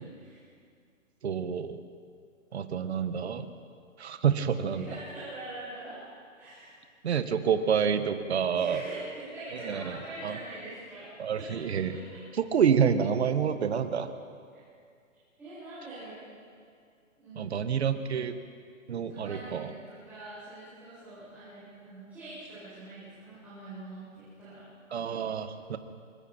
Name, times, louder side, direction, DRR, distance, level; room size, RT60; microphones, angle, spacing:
voice 1, 1.2-1.8 2.5-3.5 4.0-4.9 7.0-8.8 9.5-10.0 10.2-10.4 11.2-12.0 12.4-14.1 17.4-18.4 18.9-19.7 24.9-25.8, right 7 dB, 50° right, 9 dB, 1.6 m, -28 dB
voice 2, 4.7-6.0 6.4-6.7 8.5-11.1 11.3-11.6 11.9-12.0 15.4-16.2 17.2-17.5 19.1-24.6, right 2 dB, 5° right, -16 dB, 7.7 m, -44 dB
26.0 x 25.0 x 4.5 m, 2.2 s
hypercardioid pair, 165°, 40 cm